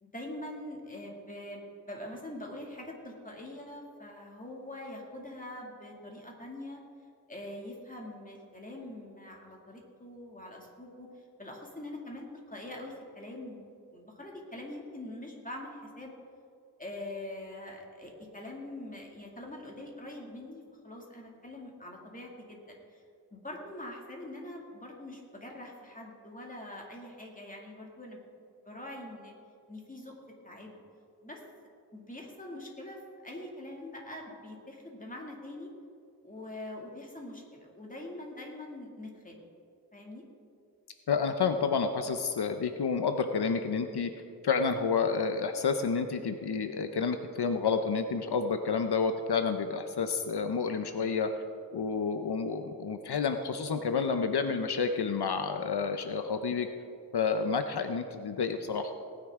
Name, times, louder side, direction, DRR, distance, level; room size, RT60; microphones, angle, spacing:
voice 1, 0.0-6.8 7.3-11.1 11.4-13.7 13.9-16.1 16.8-23.0 23.3-28.2 28.6-29.3 29.7-30.1 30.4-30.8 31.2-31.4 31.9-35.7 36.2-39.4 39.9-40.2, left 1 dB, 20° left, -1 dB, 2.3 m, -44 dB
voice 2, 41.1-44.1 44.4-51.3 51.7-56.7 57.1-58.9, left 5 dB, 80° left, 7 dB, 0.7 m, -29 dB
18.5 x 9.7 x 3.7 m, 2.4 s
wide cardioid pair, 80°, 39 cm